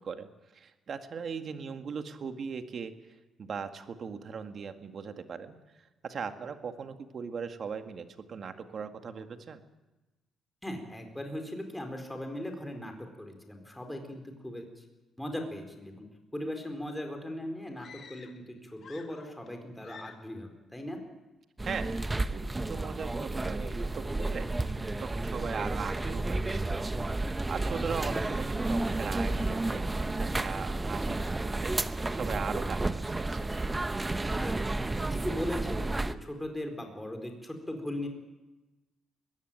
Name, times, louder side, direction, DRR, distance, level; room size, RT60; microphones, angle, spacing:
voice 1, 0.0-9.6 21.6-26.8 27.5-29.9 30.2-33.5, right 6 dB, 50° right, 7 dB, 1.9 m, -39 dB
voice 2, 10.6-14.8 15.2-16.1 16.3-21.0 27.9-28.2 34.1-38.1, left 1 dB, 5° left, 4 dB, 4.3 m, -39 dB
sound 1, 17.7-18.5 18.8-19.5 19.8-20.4, left 6 dB, 55° left, 2.0 m, -51 dB
sound 2, 21.6-36.2, right 2 dB, 20° right, 0.9 m, -31 dB
21.5 x 16.0 x 9.1 m, 1.1 s
cardioid pair, 90°, 0 cm